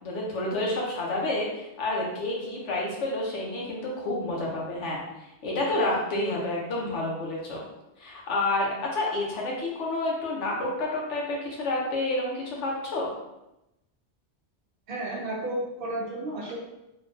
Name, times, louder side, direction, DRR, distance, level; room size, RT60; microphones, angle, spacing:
voice 1, 0.0-5.0 5.4-7.6 8.0-13.1, left 2 dB, 85° left, -3 dB, 1.1 m, -29 dB
voice 2, 14.9-16.6, right 1 dB, 60° right, -2 dB, 0.7 m, -32 dB
3.1 x 2.3 x 2.5 m, 0.91 s
omnidirectional pair, 1.2 m